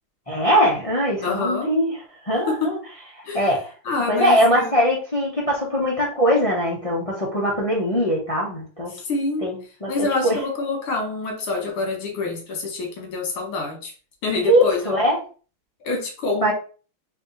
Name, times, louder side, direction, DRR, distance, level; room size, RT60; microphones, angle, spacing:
voice 1, 0.3-1.9 2.2-2.8 3.1-3.7 4.1-8.9 9.4-10.4 14.5-15.2 16.4-16.5, equal, 40° left, -3 dB, 0.4 m, -21 dB
voice 2, 1.2-1.7 2.5-2.8 3.3-3.4 3.8-4.7 8.9-9.5 9.9-13.9 14.2-14.9 15.8-16.5, left 3 dB, 80° left, 2 dB, 2.2 m, -26 dB
4.3 x 2.7 x 4.0 m, 0.37 s
omnidirectional pair, 2.3 m